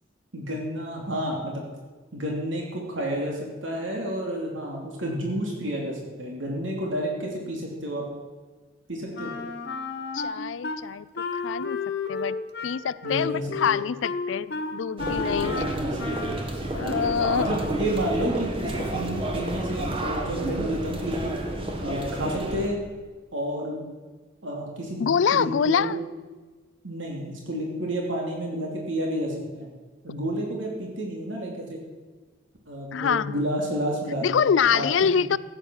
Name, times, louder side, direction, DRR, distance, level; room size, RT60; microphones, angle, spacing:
voice 1, 0.3-1.6 2.1-8.0 8.9-9.3 13.0-13.8 15.5-15.9 16.2-16.3 17.3-21.3 21.8-22.8 23.3-23.8 24.4-25.9 26.8-29.7 30.0-31.8 32.7-35.2, equal, 85° right, -1 dB, 3.0 m, -30 dB
Wind instrument woodwind instrument, 9.1-10.8 11.2-16.5, left 4 dB, 60° left, 1.3 m, -32 dB
voice 2, 10.1-11.8 12.1-12.4 12.6-15.7 16.7-17.6 25.0-26.0 32.9-33.4 34.2-35.4, left 7 dB, 75° left, 18 dB, 0.4 m, -25 dB
sound 1, 15.0-22.7, right 1 dB, 30° right, 1.5 m, -30 dB
14.5 x 9.0 x 6.3 m, 1.3 s
head